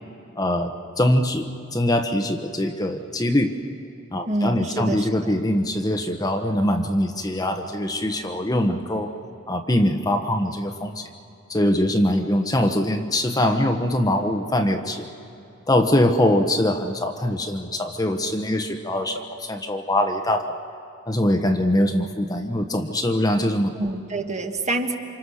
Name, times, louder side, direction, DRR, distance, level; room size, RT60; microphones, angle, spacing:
voice 1, 0.4-3.5 4.1-9.1 9.5-11.0 11.5-15.1 15.7-20.5 21.1-23.7, left 1 dB, 20° left, 4 dB, 1.1 m, -22 dB
voice 2, 4.3-5.3 23.7-24.9, right 2 dB, 35° right, 4 dB, 1.6 m, -27 dB
28.5 x 26.0 x 6.5 m, 2.8 s
head